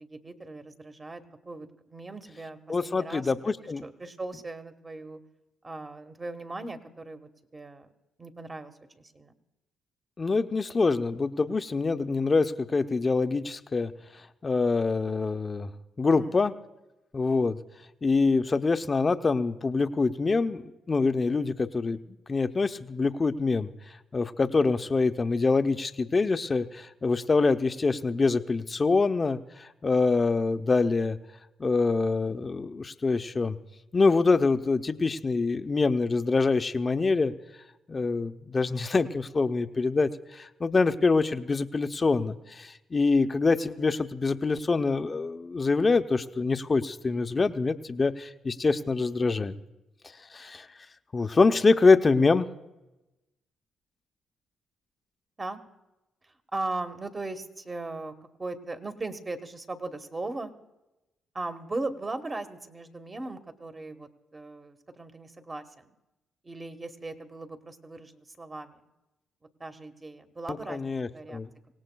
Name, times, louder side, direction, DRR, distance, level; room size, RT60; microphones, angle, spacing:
voice 1, 0.0-3.3 3.8-5.2 5.6-7.9 8.2-9.3 16.0-16.4 55.4-55.6 56.5-58.1 58.4-60.5 61.3-65.9 66.4-68.8 69.6-71.4, right 2 dB, 25° right, 8 dB, 1.2 m, -38 dB
voice 2, 2.7-3.8 10.2-13.9 14.4-15.7 16.0-16.5 17.1-17.6 18.0-22.0 22.3-23.7 24.1-31.2 31.6-33.6 33.9-37.3 37.9-49.5 50.3-50.7 51.1-52.5 70.5-71.5, left 4 dB, 30° left, 9 dB, 0.6 m, -25 dB
25.5 x 17.5 x 2.3 m, 0.98 s
cardioid pair, 90°, 0 cm